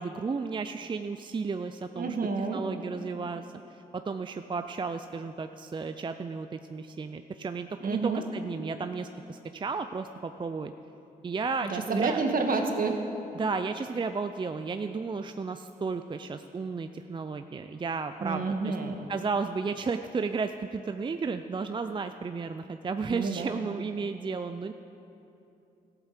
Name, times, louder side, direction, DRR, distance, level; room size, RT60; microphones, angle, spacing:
voice 1, 0.0-2.2 2.5-10.7 11.2-12.2 13.3-18.8 19.1-24.7, right 4 dB, 30° right, 9 dB, 0.4 m, -33 dB
voice 2, 1.9-2.6 7.8-8.2 11.6-13.0 18.2-19.0 23.1-23.5, right 4 dB, 60° right, 4 dB, 1.6 m, -29 dB
14.0 x 8.2 x 6.6 m, 2.9 s
supercardioid pair, 55°, 17 cm